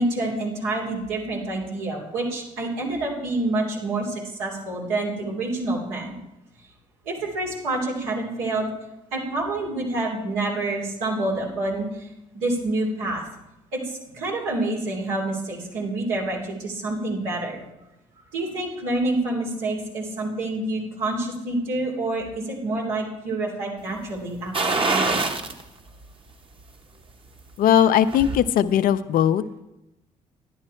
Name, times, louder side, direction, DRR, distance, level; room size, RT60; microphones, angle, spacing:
voice 1, 0.0-6.2 7.0-8.7 9.1-12.1 12.3-13.2 13.7-17.6 18.3-25.3, right 2 dB, 85° right, -3 dB, 3.0 m, -27 dB
sound 1, 24.5-25.6 26.0-26.1 27.6-28.4 28.8-28.9, right 3 dB, 35° right, 1.2 m, -24 dB
voice 2, 27.6-29.4, left 10 dB, 65° left, 12 dB, 0.6 m, -19 dB
11.0 x 10.5 x 4.4 m, 0.91 s
hypercardioid pair, 55°, 16 cm